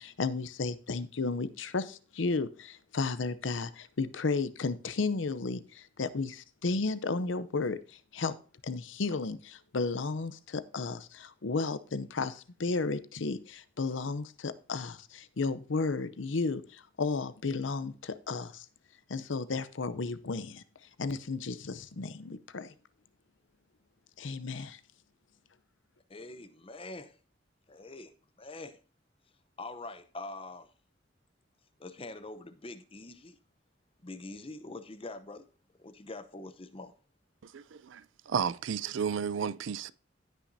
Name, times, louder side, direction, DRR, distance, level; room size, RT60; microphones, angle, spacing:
voice 1, 0.0-8.4 8.6-18.7 19.1-20.6 21.0-22.7 24.2-24.8, left 3 dB, 85° left, 0.7 m, -33 dB
voice 2, 26.1-27.2 27.7-28.1 28.4-28.8 29.6-30.7 31.8-33.4 34.0-35.4 35.8-36.9, left 2 dB, 30° left, 0.8 m, -44 dB
voice 3, 37.5-39.9, right 7 dB, 80° right, 0.4 m, -33 dB
16.0 x 6.0 x 2.7 m
head